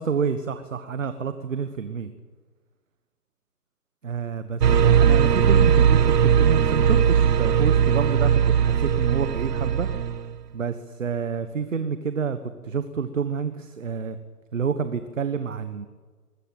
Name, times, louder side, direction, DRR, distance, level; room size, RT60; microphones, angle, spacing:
voice 1, 0.0-2.1 4.0-9.9 10.5-12.4 12.6-14.2 14.5-15.9, right 6 dB, 50° right, 10 dB, 1.4 m, -28 dB
sound 1, 4.6-10.3, right 8 dB, 80° right, 1.0 m, -19 dB
21.5 x 14.0 x 9.2 m, 1.4 s
hypercardioid pair, 175°, 47 cm